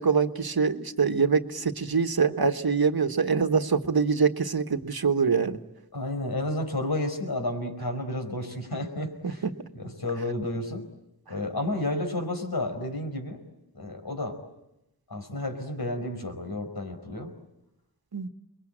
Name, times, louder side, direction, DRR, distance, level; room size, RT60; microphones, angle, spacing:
voice 1, 0.0-5.6 9.2-9.5 18.1-18.3, right 5 dB, 70° right, 8 dB, 1.4 m, -24 dB
voice 2, 5.9-9.4 9.7-10.9 11.3-13.5 13.7-14.4 15.1-17.3, left 1 dB, 75° left, 5 dB, 5.0 m, -31 dB
29.5 x 22.5 x 8.9 m, 0.91 s
wide cardioid pair, 65°, 38 cm